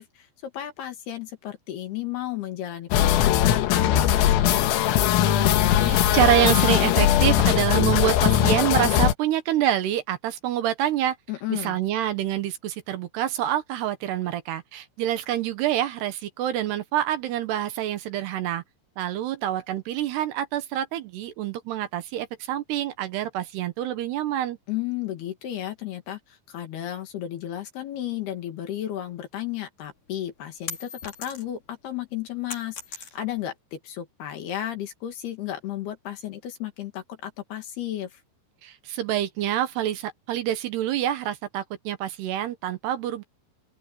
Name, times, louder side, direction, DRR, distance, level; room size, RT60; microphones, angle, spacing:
voice 1, 0.0-5.0 11.3-11.8 24.7-38.2, left 12 dB, 60° left, 3.4 m, -33 dB
sound 1, 2.9-9.1, left 11 dB, 90° left, 4.2 m, -20 dB
voice 2, 5.7-11.2 11.5-18.6 19.0-24.6 38.6-43.2, right 12 dB, 70° right, 2.7 m, -26 dB
sound 2, 30.1-31.7 32.0-33.5, left 5 dB, 40° left, 5.2 m, -38 dB
open air
omnidirectional pair, 5.8 m